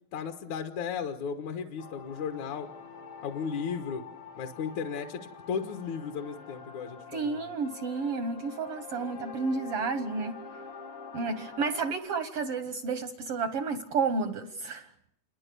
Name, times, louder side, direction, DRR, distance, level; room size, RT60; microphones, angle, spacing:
voice 1, 0.1-2.7 3.2-4.0 4.4-7.4, left 6 dB, 65° left, 5 dB, 2.3 m, -35 dB
sound 1, 1.8-11.9, left 5 dB, 85° left, 7.4 m, -46 dB
voice 2, 7.1-10.3 11.1-14.9, right 4 dB, 75° right, 9 dB, 1.3 m, -31 dB
29.0 x 22.5 x 6.8 m, 0.74 s
omnidirectional pair, 4.2 m